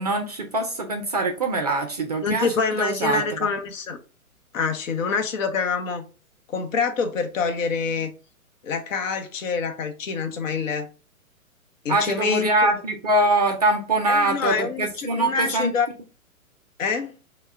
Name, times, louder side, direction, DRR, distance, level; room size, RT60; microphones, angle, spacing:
voice 1, 0.0-3.2 11.9-15.7, right 2 dB, 30° right, 0.4 m, -23 dB
voice 2, 2.2-4.0 4.5-6.1 6.5-8.1 8.6-10.9 11.8-12.7 14.1-15.9 16.8-17.1, left 5 dB, 60° left, 0.8 m, -26 dB
4.3 x 2.2 x 4.4 m
figure-of-eight pair, 120°, 43 cm